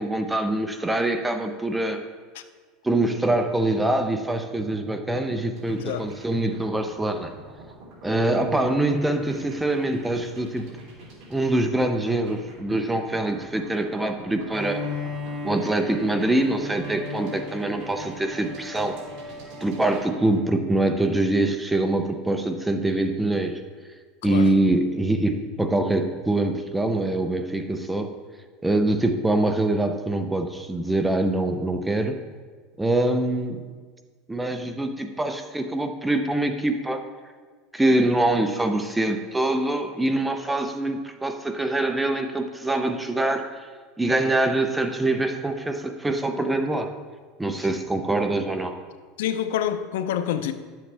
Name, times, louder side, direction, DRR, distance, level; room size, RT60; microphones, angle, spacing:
voice 1, 0.0-2.0 2.8-7.3 8.0-10.7 11.3-14.8 15.4-18.9 19.6-23.6 24.2-28.1 28.6-32.2 32.8-33.7 34.3-37.0 37.7-43.5 44.0-46.9 47.4-48.7, right 2 dB, 5° right, 0.6 m, -24 dB
sound 1, 5.6-20.0, right 3 dB, 55° right, 3.0 m, -46 dB
voice 2, 5.7-6.1 24.2-24.5 49.2-50.5, left 10 dB, 90° left, 0.6 m, -27 dB
Bowed string instrument, 14.5-20.5, left 3 dB, 25° right, 1.6 m, -36 dB
11.0 x 7.6 x 3.4 m
supercardioid pair, 140°, 0 cm